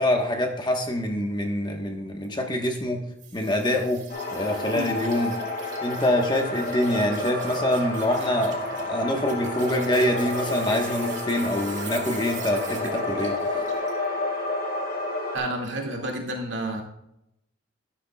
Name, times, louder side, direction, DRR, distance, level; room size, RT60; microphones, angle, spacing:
voice 1, 0.0-3.0 3.3-4.0 4.3-5.3 5.8-13.4, left 1 dB, 20° left, 3 dB, 1.3 m, -25 dB
sound 1, 3.2-14.0, right 3 dB, 35° right, 2.0 m, -40 dB
sound 2, 4.1-15.4, left 2 dB, 45° left, 3.5 m, -30 dB
voice 2, 15.3-16.8, right 1 dB, 60° right, 0 dB, 2.3 m, -30 dB
12.5 x 12.0 x 2.4 m, 0.80 s
head